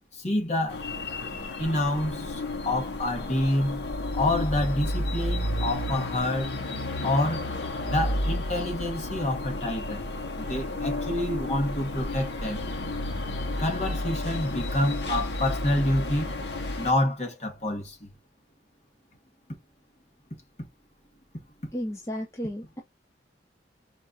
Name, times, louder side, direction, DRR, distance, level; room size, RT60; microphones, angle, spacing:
voice 1, 0.1-0.8 1.6-3.9 4.1-6.6 7.0-7.5 7.8-10.1 10.4-12.7 13.6-16.4 16.8-18.2 20.6-20.7 21.3-21.7, left 1 dB, 40° left, 1.3 m, -28 dB
sound 1, 0.7-16.9, left 1 dB, 65° left, 0.9 m, -32 dB
voice 2, 21.7-22.8, equal, 15° left, 0.5 m, -33 dB
4.3 x 2.4 x 4.0 m
head